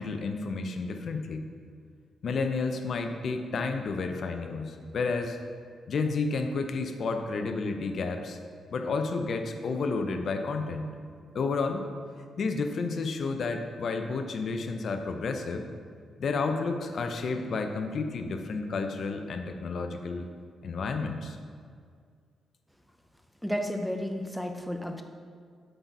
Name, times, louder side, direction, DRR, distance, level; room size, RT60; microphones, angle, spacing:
voice 1, 0.0-1.4 2.2-5.4 5.9-8.4 8.7-10.9 11.3-11.8 12.4-15.6 16.2-20.3 20.6-21.4, left 4 dB, 55° left, 6 dB, 0.6 m, -31 dB
voice 2, 23.4-25.0, equal, ahead, 5 dB, 0.6 m, -32 dB
7.8 x 4.2 x 4.6 m, 2.1 s
cardioid pair, 115°, 0 cm